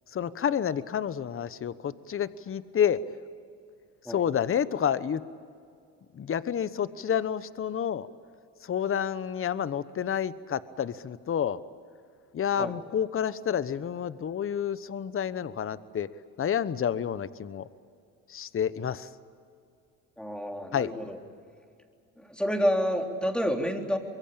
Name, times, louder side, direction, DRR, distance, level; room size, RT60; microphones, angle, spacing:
voice 1, 0.1-3.0 4.1-5.2 6.1-8.1 8.6-11.6 12.3-16.1 16.4-17.7 18.3-19.1 20.7-20.9, left 8 dB, 35° left, 15 dB, 1.1 m, -29 dB
voice 2, 20.2-21.2 22.2-24.0, equal, 5° left, 3 dB, 3.7 m, -29 dB
25.0 x 22.5 x 8.7 m, 2.3 s
supercardioid pair, 85°, 37 cm